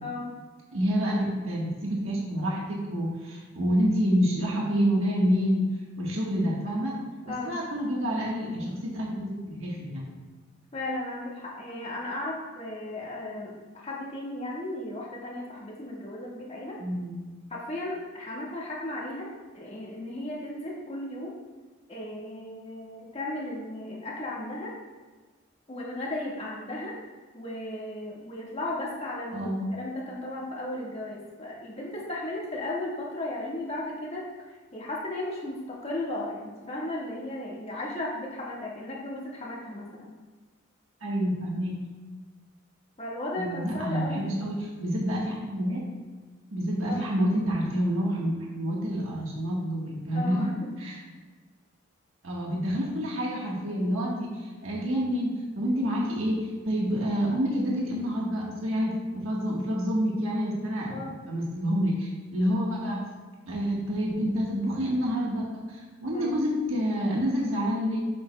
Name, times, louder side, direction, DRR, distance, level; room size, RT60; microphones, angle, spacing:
voice 1, 0.7-5.7 6.0-6.9 7.3-10.1 16.8-17.2 29.3-29.7 41.0-41.8 43.4-45.8 46.5-51.0 52.2-63.0 63.5-68.0, equal, 75° right, -3 dB, 1.4 m, -28 dB
voice 2, 10.7-16.8 17.5-19.3 19.5-21.3 21.9-24.7 25.7-27.0 27.3-40.1 43.0-44.3 46.9-47.0 50.1-50.4 60.9-61.1 66.1-66.3, left 1 dB, 30° left, -4 dB, 1.6 m, -35 dB
8.0 x 7.6 x 2.2 m, 1.3 s
head